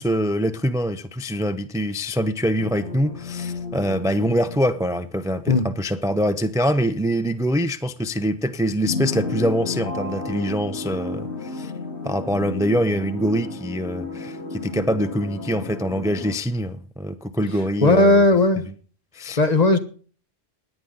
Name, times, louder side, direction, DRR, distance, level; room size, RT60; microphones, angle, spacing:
voice 1, 0.0-11.7 12.0-18.2 19.1-19.4, equal, 5° right, 10 dB, 0.6 m, -24 dB
sound 1, 2.6-5.8 6.2-6.3 8.8-16.3, left 3 dB, 80° left, 2.6 m, -33 dB
voice 2, 17.8-18.6 19.4-19.8, left 2 dB, 40° left, 8 dB, 1.3 m, -16 dB
17.5 x 10.0 x 3.9 m, 0.41 s
omnidirectional pair, 1.1 m